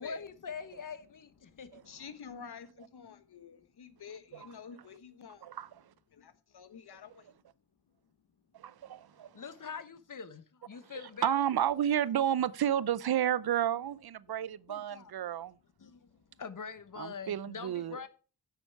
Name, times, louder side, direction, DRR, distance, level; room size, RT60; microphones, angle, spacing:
voice 1, 0.0-1.7 4.3-4.4 9.3-11.4 14.7-15.1 15.8-16.0 16.4-18.1, left 6 dB, 55° left, 0.9 m, -43 dB
voice 2, 1.4-5.5 6.1-7.3, left 6 dB, 90° left, 1.2 m, -49 dB
voice 3, 8.6-9.3 10.9-15.5 17.0-18.1, right 10 dB, 75° right, 0.6 m, -31 dB
10.0 x 7.1 x 4.6 m
wide cardioid pair, 105°, 38 cm